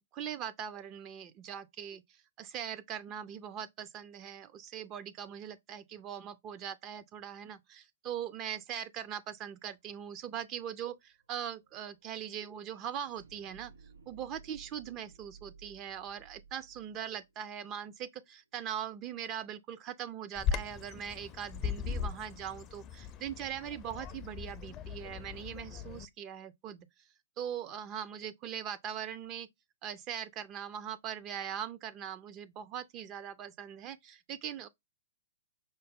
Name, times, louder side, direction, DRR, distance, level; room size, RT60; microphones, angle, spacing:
voice 1, 0.1-13.7 14.1-26.9 27.4-29.5 29.8-34.7, right 9 dB, 30° right, 0.4 m, -41 dB
sound 1, 9.7-9.8 10.1-18.3, right 5 dB, 80° right, 3.0 m, -58 dB
Bird vocalization bird call bird song, 20.4-26.0, left 7 dB, 30° left, 0.4 m, -38 dB
5.2 x 2.0 x 3.5 m
figure-of-eight pair, 110°, 0 cm